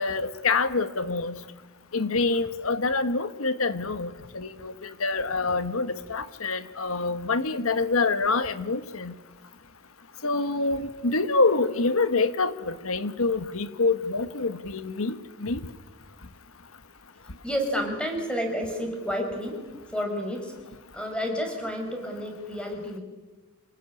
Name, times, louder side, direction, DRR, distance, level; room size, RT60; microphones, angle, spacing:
voice 1, 0.0-1.4 1.9-9.1 10.2-15.6, left 3 dB, 75° left, 12 dB, 1.3 m, -26 dB
voice 2, 17.4-19.6 19.9-20.5 20.9-23.0, equal, 5° left, 3 dB, 5.2 m, -30 dB
27.0 x 18.0 x 9.8 m, 1.3 s
head